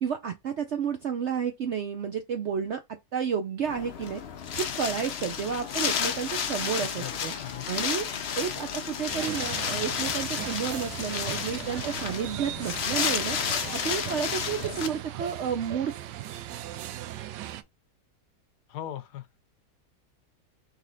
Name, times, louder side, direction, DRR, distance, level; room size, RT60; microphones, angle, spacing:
voice 1, 0.0-2.8 3.1-4.2 4.5-7.3 7.7-8.1 8.4-13.4 13.7-15.9, right 7 dB, 65° right, 0.7 m, -31 dB
Wind, 3.7-14.9, left 7 dB, 60° left, 0.7 m, -32 dB
Wind instrument woodwind instrument, 5.5-10.3, left 5 dB, 25° right, 1.4 m, -47 dB
voice 2, 6.8-7.9 18.7-19.3, left 11 dB, 75° left, 1.3 m, -40 dB
sound 1, 9.1-17.6, right 13 dB, 85° right, 1.2 m, -38 dB
4.1 x 3.2 x 3.8 m
omnidirectional pair, 1.8 m